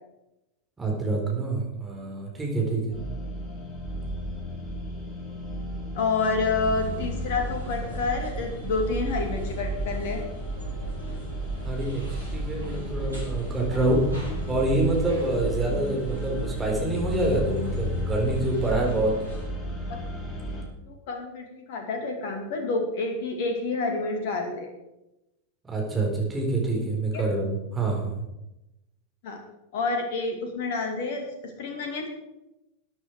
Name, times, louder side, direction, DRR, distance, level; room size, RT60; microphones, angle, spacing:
voice 1, 0.8-2.8 11.6-12.0 12.3-14.0 14.5-19.1 25.6-28.2, right 2 dB, 15° right, -1 dB, 4.3 m, -26 dB
sound 1, 2.9-20.6, left 1 dB, 20° left, 4.3 m, -34 dB
voice 2, 5.9-10.2 20.8-24.7 26.8-26.9 27.1-27.3 29.2-29.4 29.7-32.1, left 3 dB, 50° left, 3 dB, 2.3 m, -29 dB
sound 2, 6.6-19.5, right 2 dB, 85° right, 5.3 m, -36 dB
13.5 x 9.7 x 4.8 m, 0.92 s
figure-of-eight pair, 90°, 0 cm